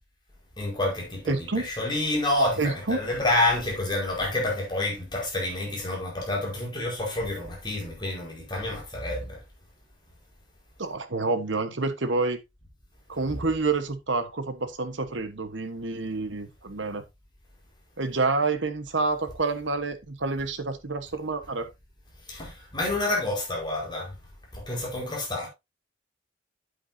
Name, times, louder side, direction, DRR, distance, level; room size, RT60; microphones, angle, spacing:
voice 1, 0.6-9.4 13.3-13.4 22.3-24.2 24.5-25.5, left 2 dB, 25° left, 4.7 m, -28 dB
voice 2, 1.3-1.7 2.6-3.0 10.8-12.4 13.1-17.0 18.0-21.7, right 3 dB, 70° right, 1.3 m, -28 dB
9.3 x 8.1 x 2.7 m
head